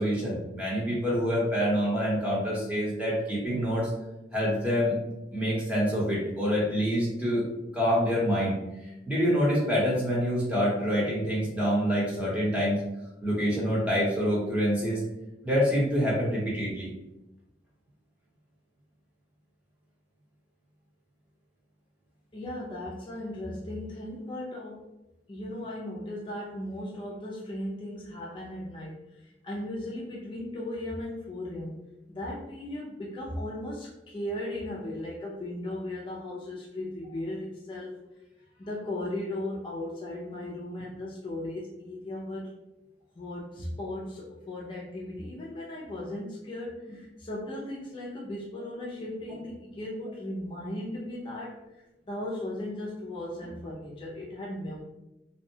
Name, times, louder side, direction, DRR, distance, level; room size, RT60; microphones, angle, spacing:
voice 1, 0.0-3.9 4.3-5.0 5.3-7.4 7.7-8.5 9.1-12.8 13.2-15.0 15.4-16.9, equal, 10° right, -7 dB, 0.9 m, -26 dB
voice 2, 22.3-24.8 25.3-31.8 32.1-38.0 38.6-42.5 43.2-51.6 52.1-54.8, left 1 dB, 30° left, -5 dB, 0.4 m, -37 dB
2.6 x 2.1 x 2.7 m, 0.97 s
head